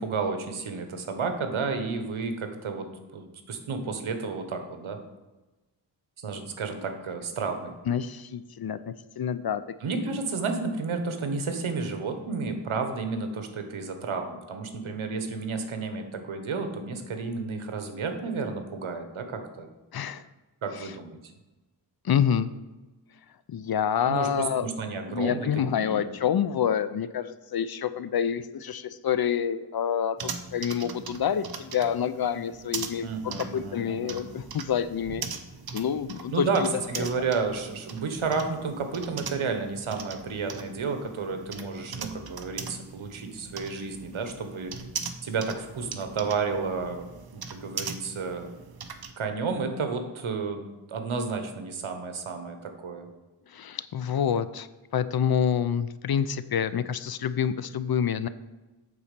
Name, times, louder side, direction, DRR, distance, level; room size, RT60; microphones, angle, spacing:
voice 1, 0.0-5.0 6.2-7.7 9.8-19.7 20.6-21.1 24.0-24.3 24.6-25.5 25.8-26.0 33.0-34.2 36.3-44.7 45.2-48.5 49.2-53.1, right 4 dB, 85° right, 6 dB, 1.2 m, -31 dB
voice 2, 7.9-9.6 10.0-10.2 19.9-20.3 20.8-20.9 22.0-22.5 23.5-24.7 25.1-35.2 35.7-36.7 37.0-37.1 53.5-54.7 54.9-58.3, left 8 dB, 55° left, 14 dB, 0.5 m, -27 dB
sound 1, 30.2-49.1, right 5 dB, 50° right, 0.7 m, -40 dB
8.6 x 4.1 x 6.7 m, 1.1 s
wide cardioid pair, 110°, 48 cm